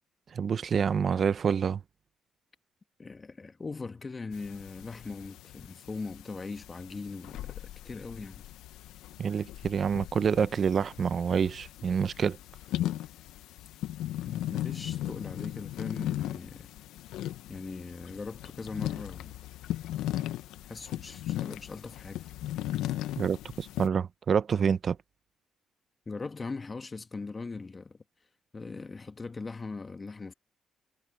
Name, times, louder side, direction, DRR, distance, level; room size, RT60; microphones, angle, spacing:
voice 1, 0.3-1.8 9.2-12.4 23.2-25.0, right 7 dB, 55° right, 0.7 m, -27 dB
voice 2, 3.0-8.4 14.2-16.7 17.5-19.3 20.7-22.2 26.1-28.0 28.5-30.3, left 4 dB, 30° left, 1.3 m, -40 dB
sound 1, 4.3-23.9, left 13 dB, 85° left, 0.8 m, -37 dB
supercardioid pair, 65°, 0 cm